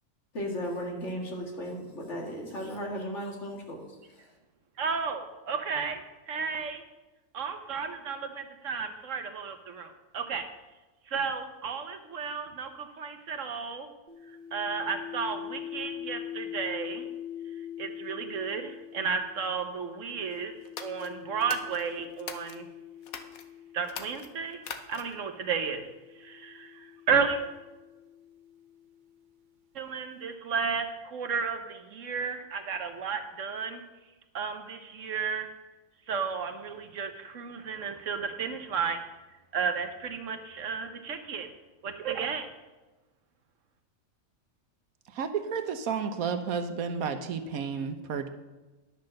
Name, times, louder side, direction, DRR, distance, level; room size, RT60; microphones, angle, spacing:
voice 1, 0.3-3.9, equal, 55° left, -1 dB, 2.3 m, -35 dB
voice 2, 4.8-6.8 7.3-10.5 11.1-13.9 14.5-17.1 17.8-20.5 20.8-22.7 23.7-25.9 26.2-27.4 29.7-33.8 34.3-35.5 36.1-39.0 39.5-41.5 41.8-42.5, right 5 dB, 65° right, 7 dB, 1.2 m, -33 dB
sound 1, 14.1-24.4 25.3-29.1, left 10 dB, 45° right, 0.7 m, -44 dB
sound 2, 20.6-22.6 23.0-23.4 23.8-25.2, left 7 dB, 80° left, 1.3 m, -42 dB
voice 3, 45.2-48.3, right 6 dB, 80° right, 8 dB, 1.3 m, -31 dB
10.5 x 6.6 x 6.4 m, 1.1 s
omnidirectional pair, 1.5 m